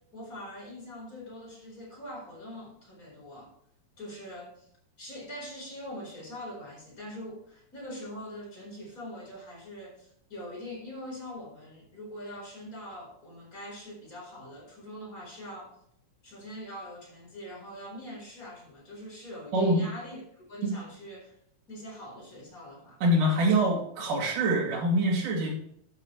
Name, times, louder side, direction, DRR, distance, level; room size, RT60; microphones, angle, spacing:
voice 1, 0.1-3.5 4.0-4.7 5.0-15.8 16.2-21.3 21.7-23.0, equal, 25° left, -2 dB, 4.6 m, -43 dB
voice 2, 19.5-19.8 23.0-25.5, right 1 dB, 60° right, -5 dB, 3.9 m, -24 dB
12.5 x 8.9 x 3.1 m, 0.70 s
omnidirectional pair, 4.2 m